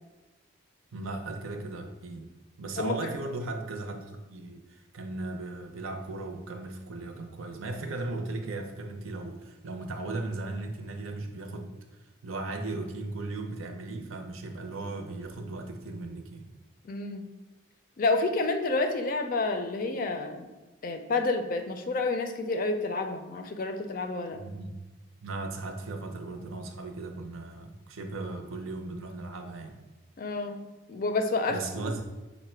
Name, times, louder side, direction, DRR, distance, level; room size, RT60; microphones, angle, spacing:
voice 1, 0.9-2.3 2.6-11.7 12.2-16.5 24.3-24.8 25.2-29.7 31.5-32.0, right 2 dB, 80° right, 5 dB, 0.6 m, -37 dB
voice 2, 16.8-17.3 18.0-20.5 20.8-24.4 30.2-30.6 30.9-31.6, left 3 dB, 40° left, 6 dB, 0.4 m, -29 dB
5.5 x 2.1 x 4.3 m, 1.1 s
head